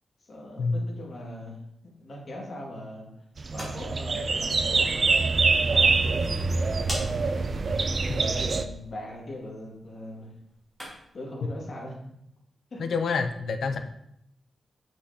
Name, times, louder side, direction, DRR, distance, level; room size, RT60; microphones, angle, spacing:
voice 1, 0.2-1.6 2.0-3.1 3.5-5.2 5.7-6.6 8.1-10.3 11.1-12.0 12.7-12.8 13.7-13.8, left 1 dB, 45° left, -3 dB, 2.1 m, -40 dB
sound 1, 3.3-11.2, equal, ahead, 2.8 m, -45 dB
sound 2, 3.4-8.6, right 4 dB, 40° right, 0.4 m, -25 dB
voice 2, 12.8-13.8, left 4 dB, 75° left, 7 dB, 0.6 m, -27 dB
7.9 x 6.1 x 2.8 m, 0.75 s
wide cardioid pair, 165°, 0 cm